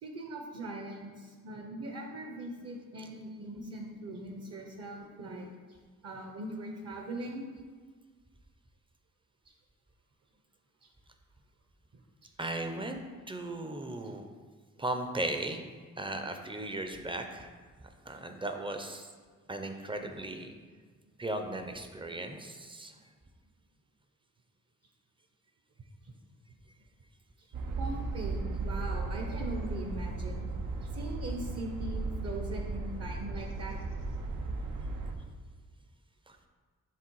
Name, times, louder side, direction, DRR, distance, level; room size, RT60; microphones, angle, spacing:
voice 1, 0.0-5.5 6.0-7.4 12.2-12.3 27.8-30.5 30.8-33.8, right 1 dB, 50° right, 1 dB, 0.9 m, -40 dB
voice 2, 12.4-13.0 13.3-14.2 14.8-15.6 16.0-17.5 18.1-19.1 19.5-20.5 21.2-22.9 36.3-36.4, right 1 dB, 15° right, 5 dB, 0.5 m, -36 dB
sound 1, 27.5-35.1, right 3 dB, 80° right, 0.7 m, -36 dB
7.5 x 3.3 x 4.6 m, 1.5 s
wide cardioid pair, 105°, 32 cm